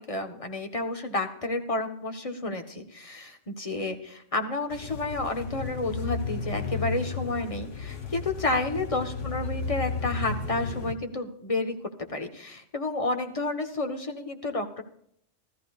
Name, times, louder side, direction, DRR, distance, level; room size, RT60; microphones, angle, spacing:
voice 1, 0.0-14.8, left 2 dB, 30° left, 5 dB, 1.2 m, -31 dB
sound 1, 4.7-10.9, left 4 dB, 80° left, 1.6 m, -33 dB
16.5 x 13.5 x 2.4 m, 0.69 s
omnidirectional pair, 1.2 m